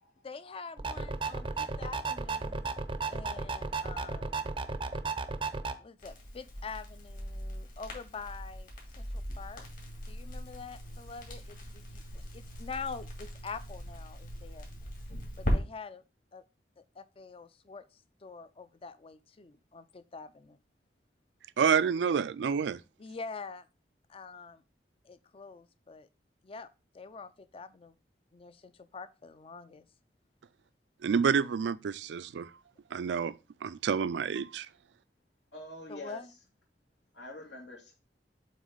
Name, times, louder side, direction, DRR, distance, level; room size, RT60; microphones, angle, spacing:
voice 1, 0.2-2.6 3.0-4.5 5.8-9.6 10.1-14.7 15.4-16.0 16.3-16.4 16.8-20.6 23.0-23.7 24.1-24.6 25.0-26.1 26.4-26.7 26.9-27.9 28.3-29.9 35.9-36.3, left 4 dB, 30° left, 0.4 m, -45 dB
sound 1, 0.8-5.7, right 4 dB, 30° right, 0.5 m, -34 dB
Crackle, 6.0-15.5, equal, 50° left, 2.3 m, -39 dB
voice 2, 21.6-22.8 31.0-32.5 32.9-33.4 33.6-34.7, right 6 dB, 85° right, 0.4 m, -28 dB
voice 3, 35.5-36.2 37.1-37.9, left 1 dB, 90° left, 2.5 m, -45 dB
7.5 x 3.1 x 5.0 m
head